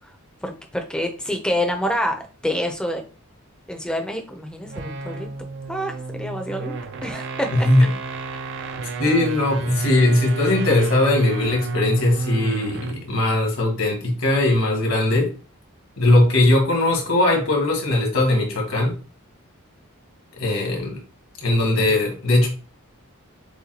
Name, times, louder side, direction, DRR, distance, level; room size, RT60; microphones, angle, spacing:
voice 1, 0.4-3.0 3.7-5.3 5.7-6.7 7.0-7.7, equal, 5° left, 0.6 m, -27 dB
sound 1, 4.6-13.1, right 3 dB, 55° right, 0.4 m, -29 dB
voice 2, 7.5-7.9 9.0-15.3 16.0-19.0 20.4-21.0 21.4-22.5, left 2 dB, 65° left, 1.5 m, -19 dB
6.7 x 2.3 x 2.8 m
head